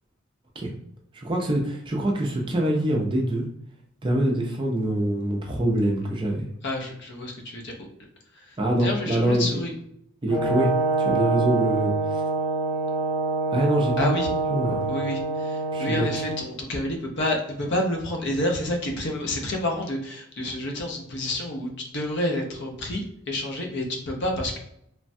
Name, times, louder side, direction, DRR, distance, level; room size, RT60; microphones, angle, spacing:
voice 1, 1.1-3.5 4.0-6.5 8.6-9.6 10.2-10.7 11.0-12.2 13.5-14.2 14.5-14.9 15.7-16.1, right 1 dB, 20° right, 0 dB, 0.4 m, -24 dB
voice 2, 6.6-7.7 8.4-9.7 14.0-14.3 14.9-24.6, left 1 dB, 50° left, 1 dB, 0.5 m, -29 dB
Brass instrument, 10.3-16.4, right 3 dB, 85° left, 1.1 m, -26 dB
3.1 x 2.1 x 2.6 m, 0.74 s
head